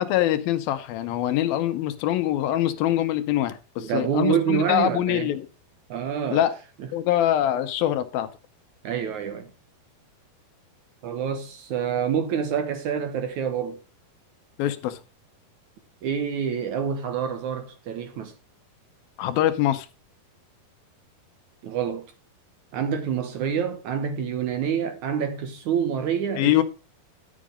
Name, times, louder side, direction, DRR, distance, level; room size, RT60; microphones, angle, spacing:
voice 1, 0.0-5.5 6.3-6.5 6.9-8.3 14.6-15.0 19.2-19.9 26.4-26.6, left 12 dB, 80° left, 2.7 m, -24 dB
voice 2, 3.8-5.3 5.9-6.4 8.8-9.5 11.0-13.8 16.0-18.3 21.6-22.1 22.7-26.6, right 7 dB, 65° right, 2.2 m, -27 dB
11.0 x 7.4 x 5.0 m
omnidirectional pair, 4.3 m